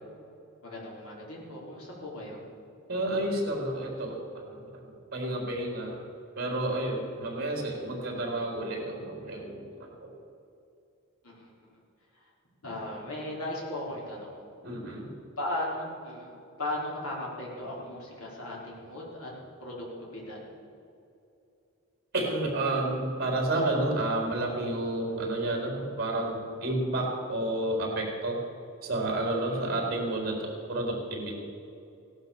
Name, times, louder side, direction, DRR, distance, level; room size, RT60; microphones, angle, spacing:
voice 1, 0.6-2.4 11.2-11.7 12.6-14.4 14.9-15.0 15.4-19.3 19.6-20.4 29.5-29.8, left 1 dB, 90° left, -4 dB, 5.1 m, -37 dB
voice 2, 2.9-4.8 5.1-6.0 6.4-10.1 14.6-15.1 22.1-28.4 28.8-31.3, right 1 dB, 45° right, 0 dB, 4.0 m, -30 dB
17.0 x 11.5 x 7.1 m, 2.7 s
head